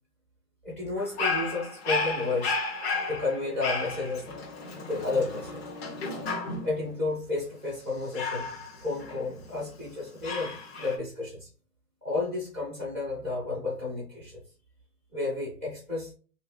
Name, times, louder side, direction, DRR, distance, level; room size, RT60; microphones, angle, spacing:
voice 1, 0.6-2.6 3.1-4.3 4.9-5.6 6.6-8.6 8.8-10.5 10.8-11.5 12.0-14.4 15.1-16.1, left 3 dB, 10° left, -7 dB, 0.4 m, -31 dB
Dog, 1.0-6.8 8.1-9.6 10.2-11.0, left 3 dB, 40° left, 0.9 m, -33 dB
3.0 x 2.7 x 3.5 m, 0.38 s
hypercardioid pair, 145°, 47 cm